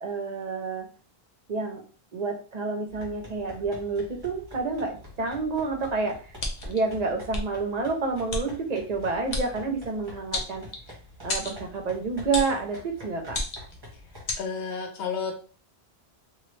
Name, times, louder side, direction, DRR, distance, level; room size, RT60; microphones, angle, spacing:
voice 1, 0.0-0.9 1.5-1.8 2.1-6.3 6.6-10.7 11.2-13.4, right 4 dB, 50° right, 3 dB, 0.6 m, -29 dB
sound 1, 2.9-14.3, left 1 dB, 25° right, 1.0 m, -47 dB
sound 2, 6.4-6.8 7.3-7.4 8.3-8.4 9.3-9.5 10.3-10.9 11.3-11.6 12.3-12.6 13.3-13.7 14.3-14.4, left 2 dB, 50° left, 0.7 m, -30 dB
voice 2, 14.4-15.4, left 5 dB, 85° left, 3 dB, 1.0 m, -31 dB
2.9 x 2.3 x 3.1 m, 0.38 s
omnidirectional pair, 1.1 m